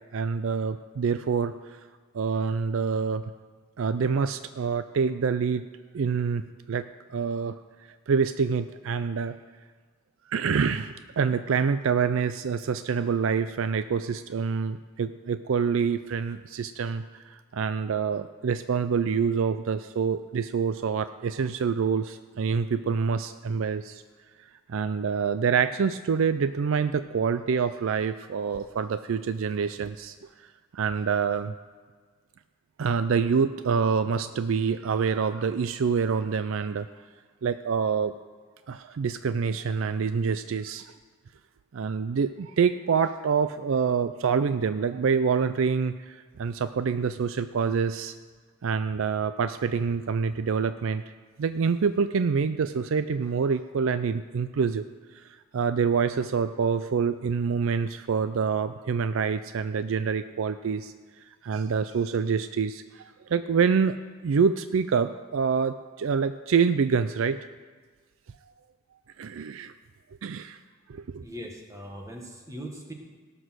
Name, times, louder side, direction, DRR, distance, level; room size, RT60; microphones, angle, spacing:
voice 1, 0.1-1.5 2.1-3.2 3.8-5.6 5.9-6.8 7.1-7.6 8.1-9.4 10.3-24.0 24.7-30.2 30.7-31.5 32.8-36.9 37.4-38.1 38.7-40.9 41.7-48.1 48.6-51.0 51.4-54.8 55.1-55.2 55.5-60.9 61.4-64.0 64.2-67.4 69.2-69.7 70.2-70.6 70.9-71.2, right 6 dB, 60° right, 11 dB, 0.4 m, -26 dB
voice 2, 71.2-72.9, equal, 15° right, 1 dB, 1.5 m, -40 dB
17.5 x 6.2 x 6.3 m, 1.5 s
head